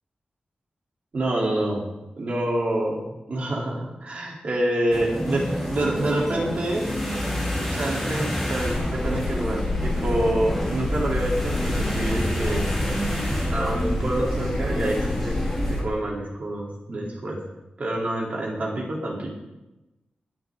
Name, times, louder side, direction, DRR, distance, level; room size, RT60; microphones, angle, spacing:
voice 1, 1.1-1.8 2.2-6.9 7.7-12.7 13.5-15.4 15.7-17.4 17.8-19.3, right 1 dB, 50° right, -2 dB, 3.9 m, -27 dB
sound 1, 4.9-15.8, equal, ahead, 3.8 m, -29 dB
sound 2, 8.6-15.9, left 1 dB, 35° left, 2.0 m, -28 dB
21.0 x 11.5 x 4.0 m, 1.0 s
wide cardioid pair, 165°, 3 cm